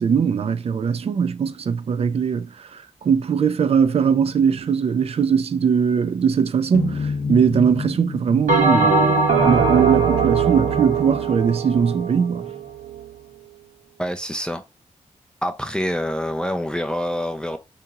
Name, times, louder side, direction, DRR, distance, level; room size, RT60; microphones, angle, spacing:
voice 1, 0.0-9.2 9.4-12.4, right 6 dB, 50° right, 0.4 m, -20 dB
sound 1, 6.7-10.0, left 4 dB, 70° left, 0.6 m, -30 dB
Bell, 8.5-13.1, right 4 dB, 85° right, 1.2 m, -20 dB
voice 2, 14.0-14.6 15.4-17.6, equal, 5° left, 0.4 m, -26 dB
2.9 x 2.8 x 3.5 m
cardioid pair, 85°, 13 cm